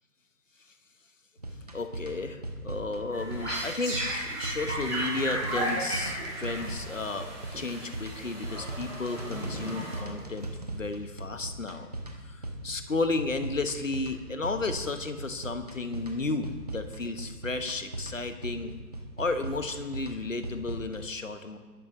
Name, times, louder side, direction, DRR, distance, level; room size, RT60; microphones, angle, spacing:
sound 1, 1.4-21.0, right 1 dB, 25° right, 0.9 m, -39 dB
voice 1, 1.7-7.3 7.5-11.9 12.2-18.7 19.2-21.6, left 3 dB, 55° left, 8 dB, 1.3 m, -33 dB
Glitched Birds, 3.1-10.4, right 1 dB, ahead, 1.0 m, -35 dB
21.0 x 12.5 x 3.2 m, 1.4 s
figure-of-eight pair, 155°, 47 cm